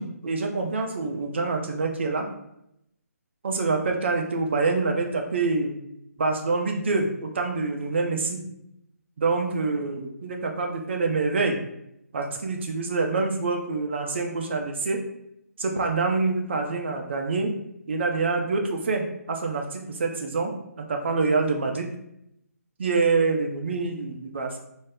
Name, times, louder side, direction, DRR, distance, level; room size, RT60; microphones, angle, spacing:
voice 1, 0.0-2.3 3.4-5.8 6.2-8.4 9.2-11.6 12.1-15.0 15.6-17.6 17.9-21.9 22.8-24.6, right 3 dB, 45° right, 3 dB, 0.4 m, -26 dB
2.3 x 2.0 x 3.4 m, 0.79 s
figure-of-eight pair, 145°, 9 cm